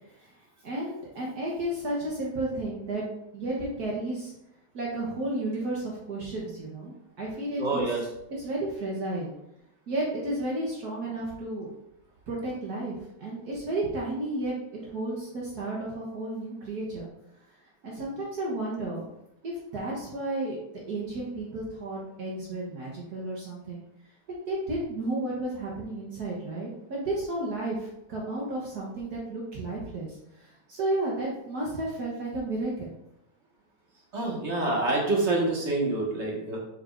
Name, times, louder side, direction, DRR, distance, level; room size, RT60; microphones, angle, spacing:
voice 1, 0.0-0.3 0.6-3.0 3.3-4.3 4.7-7.8 8.4-9.3 9.9-11.7 12.3-17.1 17.8-19.0 19.4-23.8 24.5-32.9, right 2 dB, 65° right, -4 dB, 0.9 m, -32 dB
voice 2, 7.6-8.0 34.1-36.6, right 2 dB, 30° right, -3 dB, 1.4 m, -27 dB
7.4 x 6.4 x 2.6 m, 0.83 s
omnidirectional pair, 3.4 m